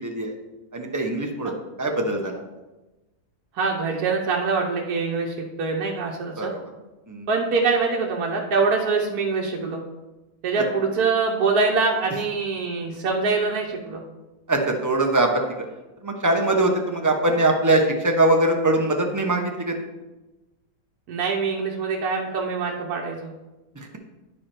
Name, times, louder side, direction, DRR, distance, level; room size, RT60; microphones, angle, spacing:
voice 1, 0.0-0.3 0.7-1.5 1.8-2.4 6.4-6.6 7.1-7.3 14.5-15.5 16.0-19.7, right 2 dB, 15° right, 2 dB, 0.7 m, -22 dB
voice 2, 3.5-6.5 7.3-9.8 10.4-14.0 21.1-23.3, right 4 dB, 70° right, -1 dB, 1.4 m, -24 dB
11.0 x 4.9 x 4.4 m, 1.1 s
omnidirectional pair, 1.7 m